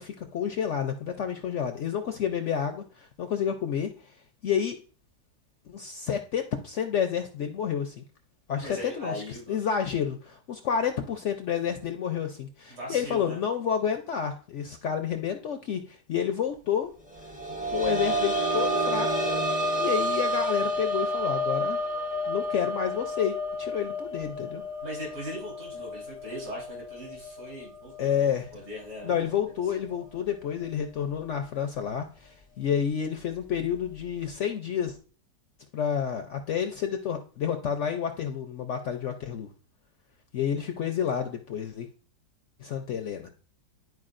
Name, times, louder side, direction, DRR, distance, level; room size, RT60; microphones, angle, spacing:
voice 1, 0.0-3.9 4.4-4.8 5.7-8.0 8.5-9.2 9.5-16.9 17.7-19.3 19.8-21.8 22.3-24.6 28.0-28.5 29.0-35.0 35.7-39.5 40.3-41.9 42.6-43.3, left 8 dB, 70° left, 6 dB, 0.7 m, -29 dB
voice 2, 8.6-9.6 12.7-13.4 24.8-29.3 29.7-29.8, equal, 70° right, -5 dB, 3.9 m, -39 dB
sound 1, 17.2-28.6 29.0-29.1 30.6-30.7, equal, 15° right, 0.3 m, -30 dB
10.5 x 4.6 x 2.5 m, 0.39 s
omnidirectional pair, 1.8 m